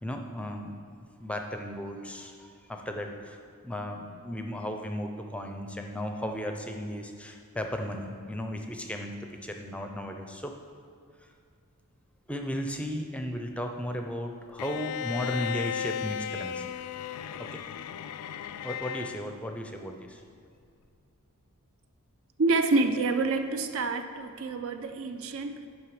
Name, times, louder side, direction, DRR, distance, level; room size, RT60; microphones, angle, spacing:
voice 1, 0.0-3.4 3.6-9.1 9.4-10.5 12.3-16.6 17.4-17.6 18.6-20.2, equal, 5° left, 4 dB, 0.5 m, -35 dB
Bowed string instrument, 14.6-19.3, left 9 dB, 80° left, 0.3 m, -35 dB
voice 2, 22.4-25.7, right 3 dB, 65° right, 8 dB, 0.5 m, -27 dB
9.0 x 5.6 x 4.9 m, 2.2 s
head